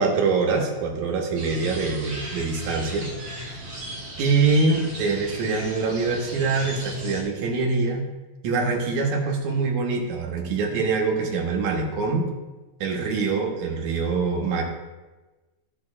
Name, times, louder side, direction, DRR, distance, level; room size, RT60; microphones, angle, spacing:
voice 1, 0.0-3.1 3.5-3.6 4.2-8.1 8.4-12.3 12.8-14.6, right 4 dB, 75° right, 1 dB, 2.4 m, -24 dB
sound 1, 1.3-7.2, equal, 35° right, 2.1 m, -36 dB
13.0 x 7.3 x 2.4 m, 1.2 s
omnidirectional pair, 3.5 m